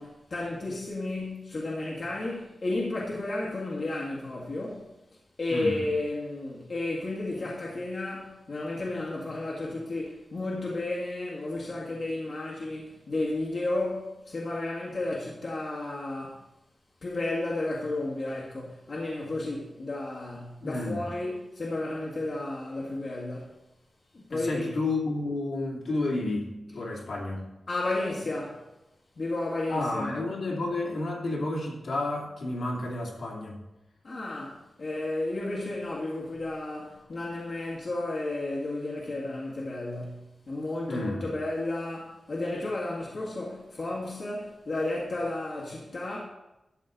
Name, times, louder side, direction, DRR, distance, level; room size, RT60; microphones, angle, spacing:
voice 1, 0.0-4.9 5.4-16.4 17.0-23.5 24.1-24.7 27.7-28.7 29.2-30.1 34.0-46.2, left 2 dB, 45° left, 1.9 m, -32 dB
voice 2, 5.5-5.8 20.6-21.0 24.3-27.5 29.7-33.6 40.9-41.2, left 2 dB, 65° left, 2.5 m, -31 dB
12.5 x 7.7 x 4.0 m
wide cardioid pair, 160°, 0 cm